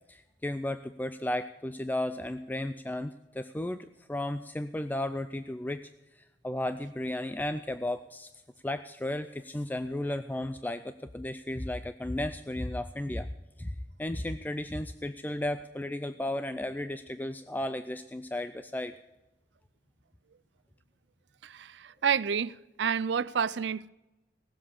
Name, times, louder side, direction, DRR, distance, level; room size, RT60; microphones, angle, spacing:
voice 1, 0.1-5.9 6.2-8.3 8.6-13.3 13.6-13.7 14.0-18.9, left 1 dB, 10° left, 0.4 m, -34 dB
voice 2, 21.4-23.9, right 7 dB, 65° right, 0.5 m, -29 dB
18.0 x 7.5 x 6.7 m
head